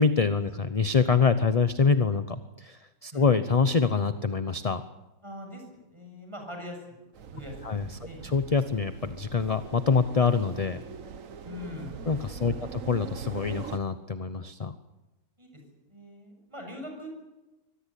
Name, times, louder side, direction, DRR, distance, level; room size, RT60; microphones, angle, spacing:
voice 1, 0.0-4.8 7.6-7.8 8.3-10.8 12.1-14.7, left 5 dB, 35° left, 11 dB, 0.7 m, -25 dB
voice 2, 5.2-8.2 11.5-12.0 12.4-12.7 15.4-15.6 15.9-17.1, left 1 dB, 20° right, 2 dB, 7.0 m, -42 dB
sound 1, 7.1-13.8, right 7 dB, 60° right, 1.4 m, -42 dB
24.5 x 18.5 x 8.4 m, 1.1 s
omnidirectional pair, 1.6 m